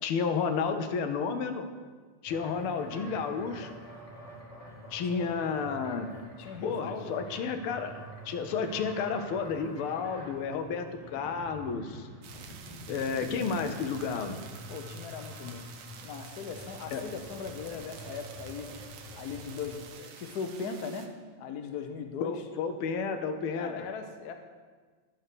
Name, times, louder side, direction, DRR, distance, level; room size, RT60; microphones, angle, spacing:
voice 1, 0.0-1.7 2.2-3.7 4.9-6.1 6.6-12.1 12.9-14.4 16.9-17.0 22.2-23.9, left 5 dB, 85° left, 8 dB, 1.6 m, -32 dB
sound 1, 2.3-19.9, equal, 30° left, 0.6 m, -47 dB
voice 2, 6.4-7.1 14.7-15.7 16.0-18.7 19.1-21.1 21.4-22.4 23.5-24.3, left 6 dB, 60° left, 5 dB, 1.1 m, -39 dB
sound 2, 12.2-21.1, right 7 dB, 85° right, 1.7 m, -49 dB
11.0 x 4.3 x 6.7 m, 1.5 s
omnidirectional pair, 2.3 m